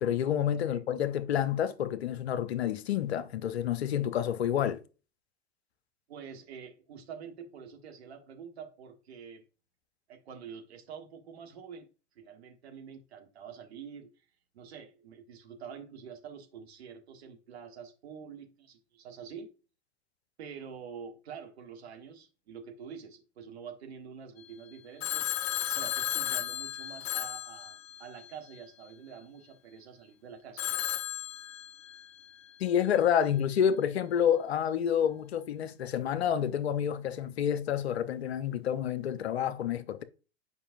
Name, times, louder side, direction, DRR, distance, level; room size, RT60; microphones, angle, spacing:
voice 1, 0.0-4.8 32.6-40.0, left 9 dB, 65° left, 0.8 m, -29 dB
voice 2, 6.1-9.4 10.1-11.9 12.1-14.1 14.5-19.5 20.4-25.3 25.7-30.7, right 7 dB, 65° right, 1.5 m, -46 dB
Telephone, 25.0-28.3 30.6-32.1, left 13 dB, 30° left, 0.4 m, -34 dB
8.2 x 5.4 x 2.6 m
figure-of-eight pair, 85°, 35 cm